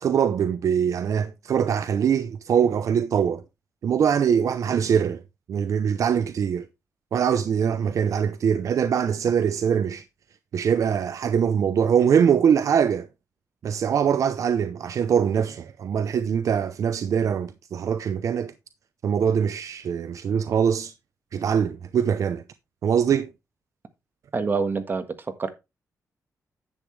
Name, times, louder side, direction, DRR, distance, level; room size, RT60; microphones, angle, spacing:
voice 1, 0.0-3.4 3.8-5.2 5.5-6.7 7.1-10.0 10.5-13.1 13.6-18.5 19.0-20.9 21.3-22.4 22.8-23.3, right 7 dB, 65° right, 0.7 m, -23 dB
voice 2, 24.3-25.0 25.4-25.5, right 4 dB, 35° right, 1.5 m, -25 dB
10.5 x 8.1 x 3.2 m
wide cardioid pair, 140°, 6 cm